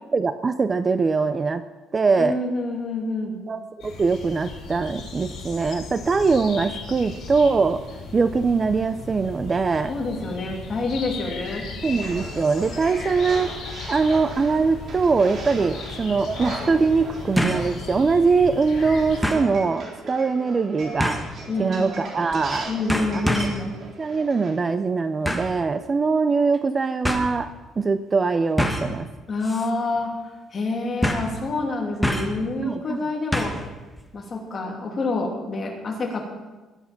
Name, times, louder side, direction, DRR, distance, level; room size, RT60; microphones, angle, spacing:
voice 1, 0.1-1.6 1.9-2.3 3.5-7.8 8.1-9.9 11.8-13.5 13.9-21.2 21.6-22.7 23.1-23.3 24.0-27.5 27.8-29.0 32.6-33.1, right 4 dB, 20° right, 11 dB, 0.4 m, -22 dB
voice 2, 2.1-3.4 9.9-11.7 21.5-21.9 22.7-23.7 29.3-30.1 30.5-33.5 34.1-36.2, left 3 dB, 25° left, -1 dB, 2.8 m, -27 dB
sound 1, 3.8-19.2, left 4 dB, 50° left, 4.8 m, -37 dB
sound 2, 11.8-24.5, right 2 dB, 40° right, 3.7 m, -38 dB
sound 3, 17.4-17.7 18.1-18.2 19.2-19.5 21.0-21.4 22.3-22.6 22.9-23.6 25.3-25.6 26.5-26.6 27.0-27.3 28.6-29.0 29.4-29.7 30.0-30.1 31.0-31.4 32.0-32.4 33.3-33.7 34.0-34.1, equal, ahead, 1.3 m, -25 dB
21.0 x 8.2 x 5.9 m, 1.2 s
cardioid pair, 170°, 0 cm